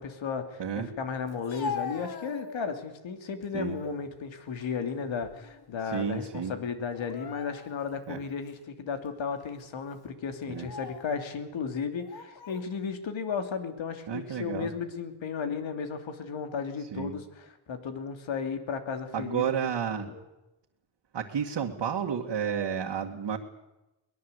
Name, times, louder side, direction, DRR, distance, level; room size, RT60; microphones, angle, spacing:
voice 1, 0.0-19.7 20.1-20.2, left 6 dB, 85° left, 7 dB, 3.1 m, -34 dB
voice 2, 0.6-0.9 3.5-3.8 5.8-6.5 8.1-8.2 10.5-10.7 14.1-14.7 16.9-17.1 19.1-20.1 21.1-23.4, right 7 dB, 65° right, 0 dB, 2.1 m, -31 dB
Speech, 1.3-2.9 3.4-4.0 4.4-5.7 5.9-6.1 6.9-7.9 8.5-8.6 9.4-9.6 10.4-11.1 12.0-12.7, left 5 dB, 55° left, 2.7 m, -41 dB
23.0 x 20.5 x 8.2 m, 0.94 s
wide cardioid pair, 115°, 45 cm